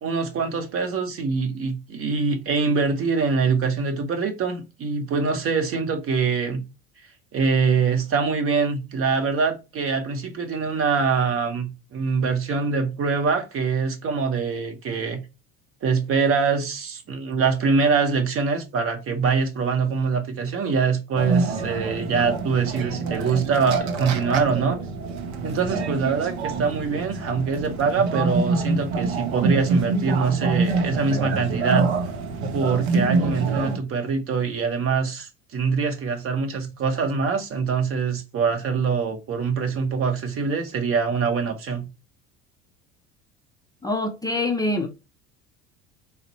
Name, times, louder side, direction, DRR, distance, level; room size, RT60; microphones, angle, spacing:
voice 1, 0.0-6.6 7.3-15.2 15.8-24.8 25.4-31.9 32.5-41.9, right 5 dB, 40° right, 0.9 m, -24 dB
sound 1, 21.2-33.8, right 3 dB, 70° right, 0.7 m, -26 dB
voice 2, 43.8-44.9, left 2 dB, 10° left, 0.5 m, -25 dB
4.0 x 2.1 x 3.9 m
hypercardioid pair, 70°, 33 cm